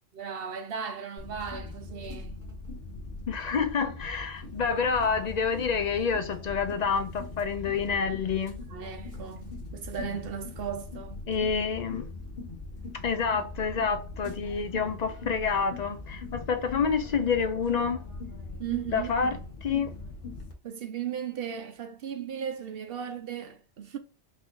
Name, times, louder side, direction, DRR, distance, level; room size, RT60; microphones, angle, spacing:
voice 1, 0.1-2.4 8.7-11.2 18.6-19.1 20.6-24.0, right 8 dB, 65° right, 0.7 m, -36 dB
sound 1, 1.2-20.5, left 3 dB, 40° left, 1.3 m, -41 dB
voice 2, 3.3-8.5 11.3-12.1 13.0-18.0 18.9-19.9, left 5 dB, 55° left, 0.4 m, -28 dB
4.9 x 2.6 x 3.8 m
omnidirectional pair, 1.2 m